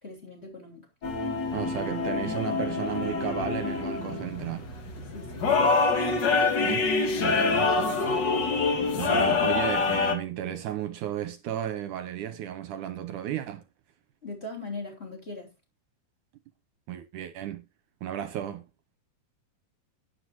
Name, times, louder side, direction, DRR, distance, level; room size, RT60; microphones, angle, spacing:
voice 1, 0.0-0.9 4.1-4.3 5.1-5.8 14.2-15.5, left 2 dB, 20° left, 3.1 m, -40 dB
sound 1, 1.0-10.1, left 4 dB, 40° left, 1.8 m, -26 dB
voice 2, 1.5-4.6 6.6-6.9 7.2-8.1 9.0-13.6 16.9-17.6 18.0-18.6, right 11 dB, 75° right, 2.2 m, -34 dB
12.0 x 9.8 x 3.0 m
omnidirectional pair, 3.9 m